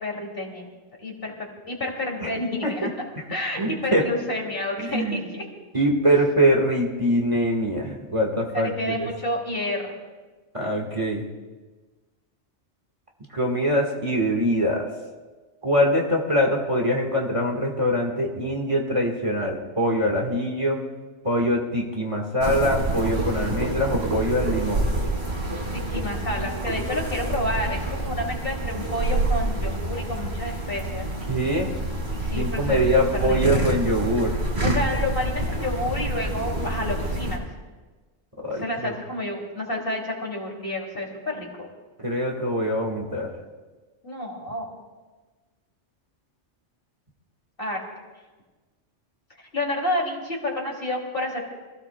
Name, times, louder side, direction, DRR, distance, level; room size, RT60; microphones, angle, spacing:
voice 1, 0.0-0.7 1.0-1.3 1.7-2.9 3.3-5.4 8.5-10.0 25.7-31.1 32.2-33.7 34.6-37.5 38.6-41.7 44.0-44.7 47.6-47.8 49.4-51.5, left 1 dB, 50° left, -1 dB, 2.9 m, -30 dB
voice 2, 3.6-4.0 4.8-5.3 5.7-9.1 10.5-11.3 13.3-14.9 15.6-20.8 21.2-25.0 31.3-31.7 32.3-34.4 38.4-38.9 42.0-43.3, equal, 30° right, -1 dB, 1.5 m, -23 dB
sound 1, 22.4-37.4, right 1 dB, 45° right, 2.2 m, -27 dB
25.5 x 16.0 x 2.2 m, 1.3 s
omnidirectional pair, 1.2 m